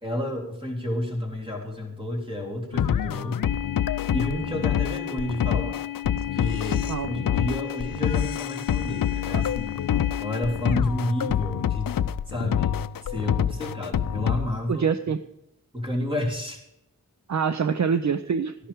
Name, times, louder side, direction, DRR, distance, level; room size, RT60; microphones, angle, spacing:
voice 1, 0.0-3.4 4.1-5.8 6.3-9.7 10.2-11.9 12.3-14.9 15.7-16.6, left 1 dB, 15° right, -1 dB, 3.4 m, -31 dB
sound 1, 2.7-14.5, left 9 dB, 70° left, 0.5 m, -26 dB
voice 2, 14.7-15.2 17.3-18.5, right 6 dB, 55° right, 11 dB, 0.5 m, -25 dB
13.0 x 11.0 x 3.5 m, 0.84 s
wide cardioid pair, 60°, 35 cm